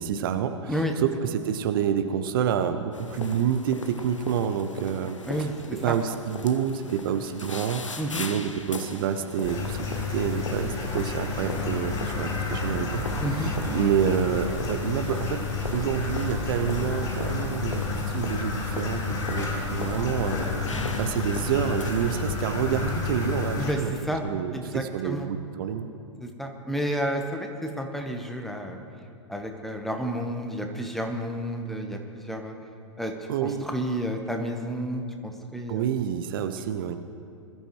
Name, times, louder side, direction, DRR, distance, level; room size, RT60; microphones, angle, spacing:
voice 1, 0.0-13.0 13.3-15.4 15.7-23.9 24.2-25.9 33.3-33.6 35.7-37.0, right 8 dB, 45° right, 8 dB, 0.7 m, -28 dB
sound 1, 2.9-22.1, left 3 dB, 75° left, 1.0 m, -39 dB
sound 2, 9.4-23.7, left 4 dB, 25° left, 3.8 m, -30 dB
voice 2, 13.2-13.5 23.5-24.3 24.5-25.3 26.2-28.8 29.3-32.5 33.0-33.1 33.4-35.9, equal, ahead, 4 dB, 1.0 m, -31 dB
21.5 x 13.0 x 3.1 m, 2.5 s
figure-of-eight pair, 105°, 16 cm